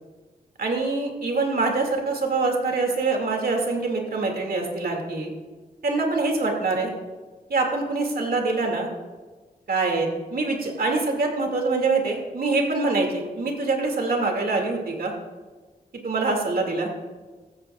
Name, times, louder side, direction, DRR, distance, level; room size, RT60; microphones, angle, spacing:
voice 1, 0.6-5.3 5.8-6.9 7.5-8.9 9.7-15.1 16.0-16.9, right 3 dB, 65° right, 1 dB, 2.4 m, -24 dB
15.0 x 14.0 x 2.5 m, 1.3 s
wide cardioid pair, 130°, 16 cm